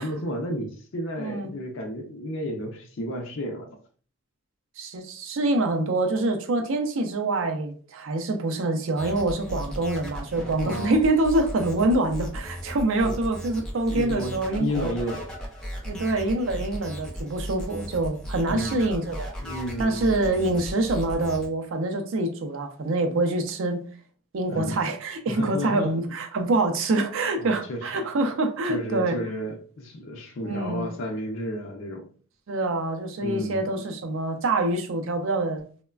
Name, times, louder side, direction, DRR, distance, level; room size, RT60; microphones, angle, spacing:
voice 1, 0.0-3.7 10.6-11.0 13.0-13.2 13.9-15.3 18.5-18.8 19.4-20.1 24.5-24.8 25.3-25.9 27.4-28.0 28.6-32.1 33.2-33.6, left 1 dB, 60° left, 0.4 m, -32 dB
voice 2, 1.2-1.5 4.8-14.9 15.8-19.3 19.8-23.8 24.3-29.2 30.4-30.9 32.5-35.8, right 2 dB, 60° right, 0.4 m, -25 dB
sound 1, 9.0-21.5, equal, 5° left, 0.4 m, -36 dB
3.0 x 2.1 x 2.3 m
head